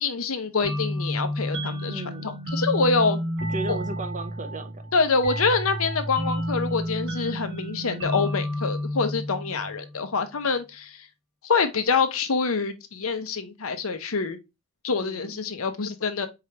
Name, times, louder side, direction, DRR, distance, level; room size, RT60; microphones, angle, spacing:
voice 1, 0.0-3.2 3.7-3.8 4.9-11.1 11.4-14.4 14.8-16.3, left 4 dB, 85° left, 0.8 m, -26 dB
sound 1, 0.6-10.0, equal, 60° right, 2.0 m, -30 dB
voice 2, 1.9-2.3 3.5-4.8 15.0-15.4, right 3 dB, 35° right, 0.6 m, -35 dB
4.7 x 3.4 x 2.8 m
head